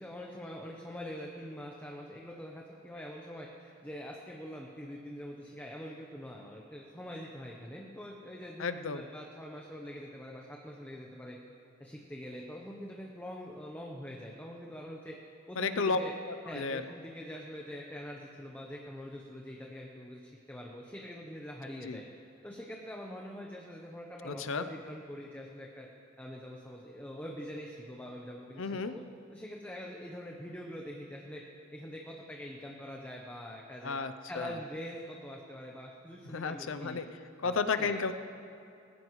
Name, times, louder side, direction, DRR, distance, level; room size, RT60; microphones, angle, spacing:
voice 1, 0.0-11.4 11.8-15.2 15.5-16.1 16.4-22.0 22.4-25.9 26.2-29.0 29.3-31.4 31.7-34.0 34.2-37.0 37.4-37.9, equal, 10° left, -1 dB, 0.8 m, -44 dB
voice 2, 8.6-9.0 15.6-16.0 16.3-16.8 21.8-22.0 24.2-24.6 28.6-29.0 33.8-34.6 36.2-37.1 37.4-38.1, left 4 dB, 70° left, 10 dB, 0.6 m, -33 dB
20.0 x 15.0 x 3.2 m, 2.7 s
head